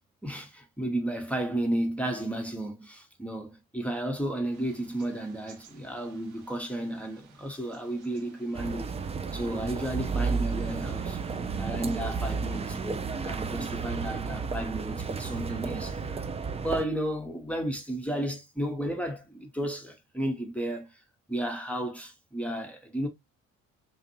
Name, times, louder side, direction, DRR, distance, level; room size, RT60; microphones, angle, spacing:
voice 1, 0.2-8.9 9.3-11.2 11.6-21.0 21.3-23.1, right 1 dB, 5° left, 0.8 m, -33 dB
Thunder / Rain, 4.5-12.8, right 8 dB, 75° right, 0.7 m, -51 dB
sound 1, 8.6-16.8, right 5 dB, 15° right, 0.3 m, -32 dB
2.6 x 2.5 x 2.8 m
hypercardioid pair, 45°, 40 cm